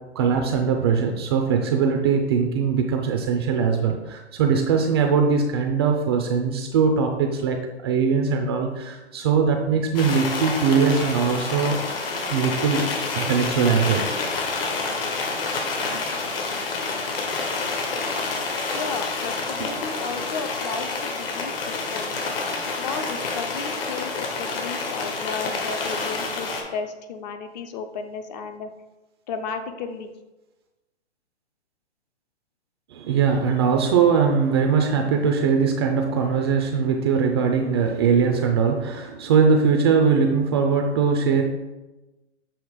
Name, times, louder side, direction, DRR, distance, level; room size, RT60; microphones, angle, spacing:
voice 1, 0.2-12.0 12.3-12.9 13.1-14.1 15.9-16.0 32.9-41.4, right 6 dB, 25° right, 3 dB, 0.3 m, -21 dB
sound 1, 9.9-26.6, left 3 dB, 55° left, 1.5 m, -28 dB
voice 2, 18.7-22.1 22.8-28.7 29.3-30.1, left 5 dB, 40° left, 7 dB, 0.6 m, -34 dB
7.1 x 3.0 x 4.8 m, 1.1 s
hypercardioid pair, 125°, 34 cm